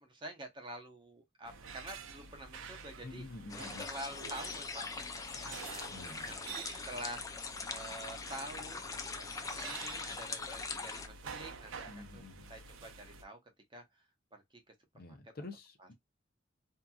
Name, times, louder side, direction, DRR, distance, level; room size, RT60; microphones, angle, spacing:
voice 1, 0.0-3.2 3.6-5.0 5.3-7.2 7.7-8.9 9.2-9.3 9.6-13.4 13.7-13.8 14.3-14.4 15.0-15.2 15.8-15.9, right 1 dB, 25° right, 0.7 m, -47 dB
sound 1, 1.4-13.2, right 5 dB, 90° right, 0.5 m, -49 dB
voice 2, 3.0-3.9 5.9-6.4 11.9-12.5 14.9-15.9, left 2 dB, 50° left, 0.7 m, -48 dB
sound 2, 3.5-11.1, left 4 dB, 15° left, 0.3 m, -42 dB
2.7 x 2.5 x 2.2 m
head